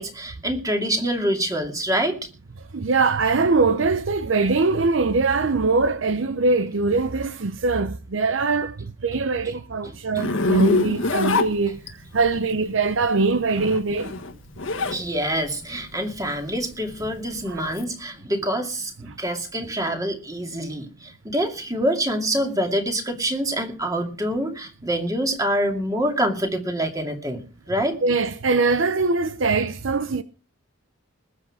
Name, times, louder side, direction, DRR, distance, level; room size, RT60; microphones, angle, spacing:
voice 1, 0.0-2.2 14.9-28.0, right 1 dB, 15° right, 2.4 m, -26 dB
voice 2, 2.7-8.8 9.0-11.8 12.1-14.1 17.5-17.6 28.0-30.2, right 3 dB, 70° right, 0.7 m, -22 dB
Zipper (clothing), 10.2-12.2 13.4-15.0 15.4-17.8, left 3 dB, 75° left, 1.6 m, -25 dB
20.5 x 8.1 x 4.9 m
head